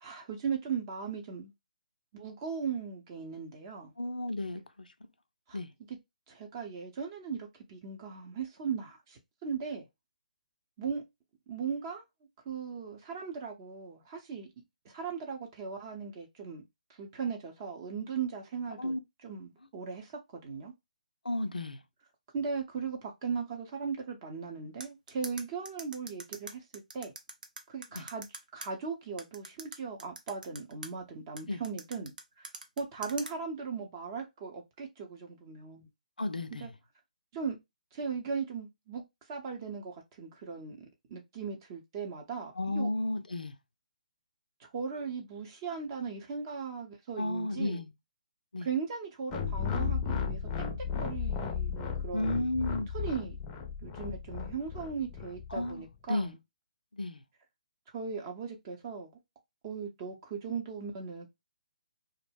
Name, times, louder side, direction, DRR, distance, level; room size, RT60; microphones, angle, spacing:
voice 1, 0.0-1.5 2.1-3.9 5.5-5.6 5.9-6.0 6.3-9.9 10.8-11.0 11.5-12.0 12.5-14.5 14.8-16.6 17.0-18.9 19.2-20.7 22.3-27.1 27.7-28.3 28.5-32.5 32.8-35.9 36.5-36.7 37.3-37.6 37.9-39.0 39.3-40.8 41.1-42.9 44.6-47.8 48.6-50.4 50.8-52.5 52.9-53.4 53.8-56.4 57.9-59.1 59.6-61.3, right 6 dB, 30° right, 0.6 m, -38 dB
voice 2, 4.0-4.6 5.5-5.7 18.8-19.0 21.3-21.8 28.0-28.1 31.5-31.6 36.2-36.7 42.6-43.5 47.2-47.9 48.5-48.7 52.1-52.9 55.5-56.3 56.9-57.2, left 1 dB, 90° left, 0.4 m, -33 dB
sound 1, 24.8-28.7 29.2-30.9 31.4-33.3, right 3 dB, 75° right, 0.6 m, -43 dB
sound 2, 49.3-55.7, left 6 dB, 20° left, 0.5 m, -35 dB
2.3 x 2.0 x 3.3 m
figure-of-eight pair, 140°, 5 cm